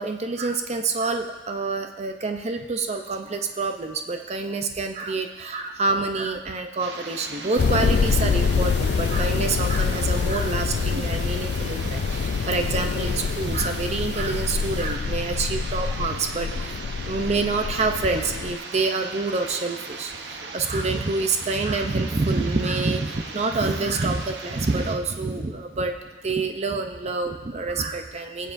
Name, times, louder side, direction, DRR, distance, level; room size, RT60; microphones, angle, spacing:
voice 1, 0.0-16.8 17.1-28.5, right 3 dB, 40° right, 5 dB, 0.6 m, -27 dB
sound 1, 6.8-25.0, right 4 dB, 75° right, 0.9 m, -38 dB
sound 2, 7.6-18.6, left 5 dB, 65° left, 0.3 m, -26 dB
22.0 x 7.6 x 2.6 m, 1.2 s
head